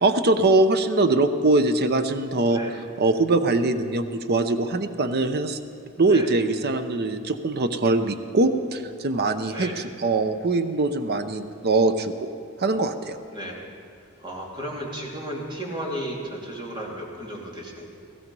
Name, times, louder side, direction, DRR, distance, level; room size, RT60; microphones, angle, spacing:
voice 1, 0.0-5.6 6.0-12.3 12.6-13.2, right 2 dB, 50° right, 9 dB, 0.7 m, -22 dB
voice 2, 14.2-17.9, equal, 20° right, -2 dB, 2.6 m, -34 dB
16.5 x 16.0 x 5.4 m, 2.3 s
head